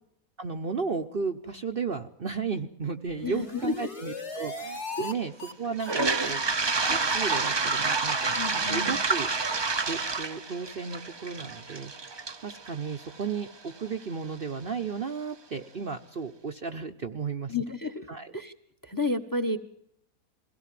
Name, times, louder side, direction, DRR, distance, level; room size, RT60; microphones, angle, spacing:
voice 1, 0.4-9.6 9.8-17.6 18.1-18.3, right 5 dB, 45° right, 6 dB, 1.0 m, -34 dB
sound 1, 3.1-5.1 5.4-5.5 5.8-5.9 6.2-6.3 6.6-6.7 7.0-7.1 7.4-7.5 7.8-7.9 8.2-8.3, left 2 dB, 50° left, 2.6 m, -39 dB
voice 2, 3.2-3.7 5.0-5.1 8.4-9.0 17.5-18.0 18.3-18.5 18.8-19.6, left 3 dB, 15° left, 11 dB, 1.2 m, -31 dB
Toilet flush, 5.8-13.7, right 4 dB, 25° right, 0.5 m, -28 dB
22.5 x 17.0 x 7.5 m, 0.73 s
omnidirectional pair, 1.6 m